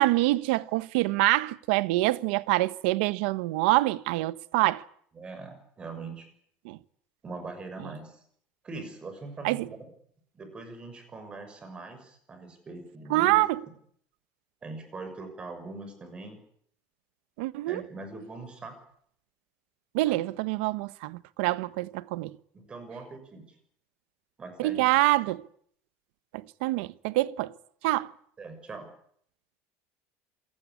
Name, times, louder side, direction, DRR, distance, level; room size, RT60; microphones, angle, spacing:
voice 1, 0.0-4.8 6.6-6.8 7.8-7.9 9.4-9.7 13.1-13.6 17.4-17.8 19.9-22.4 24.6-25.4 26.3-27.5 27.8-28.1, right 19 dB, 80° right, 1.1 m, -26 dB
voice 2, 5.1-6.3 7.2-8.2 8.6-9.8 10.3-13.4 14.6-16.4 17.7-18.8 20.0-20.2 22.5-23.4 24.4-24.8 25.1-25.2 28.4-28.9, right 3 dB, 15° right, 6.5 m, -42 dB
27.5 x 18.5 x 9.8 m
cardioid pair, 175°, 6 cm